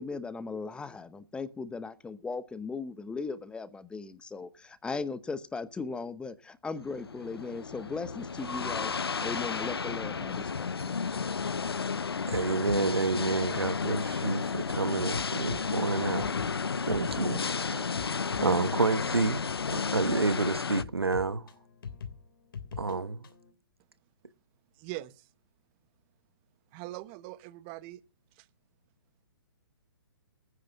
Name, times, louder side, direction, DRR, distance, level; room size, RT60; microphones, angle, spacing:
voice 1, 0.0-8.9 9.2-11.0, left 4 dB, 5° left, 0.9 m, -38 dB
sound 1, 6.8-20.8, left 5 dB, 80° left, 0.7 m, -32 dB
sound 2, 12.3-23.5, left 6 dB, 60° left, 3.3 m, -45 dB
voice 2, 12.3-16.3 16.9-17.8 18.4-19.4 19.7-21.4 22.8-23.3, right 4 dB, 90° right, 1.1 m, -29 dB
voice 3, 24.8-25.1 26.7-28.0, right 17 dB, 30° right, 1.0 m, -41 dB
18.5 x 9.9 x 5.9 m
figure-of-eight pair, 130°, 13 cm